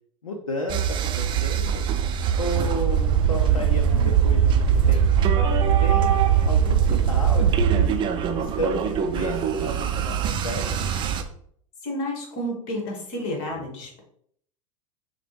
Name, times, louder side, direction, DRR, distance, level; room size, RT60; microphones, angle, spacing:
voice 1, 0.2-1.8 2.4-5.1 5.8-8.0 8.4-10.9, left 1 dB, 85° left, 2 dB, 0.5 m, -33 dB
sound 1, 0.7-11.2, right 8 dB, 30° right, 0.4 m, -25 dB
sound 2, 2.9-7.9, right 8 dB, 70° right, 0.6 m, -20 dB
voice 2, 11.8-14.0, equal, 50° left, 1 dB, 1.4 m, -31 dB
5.9 x 2.2 x 3.1 m, 0.64 s
figure-of-eight pair, 85°, 18 cm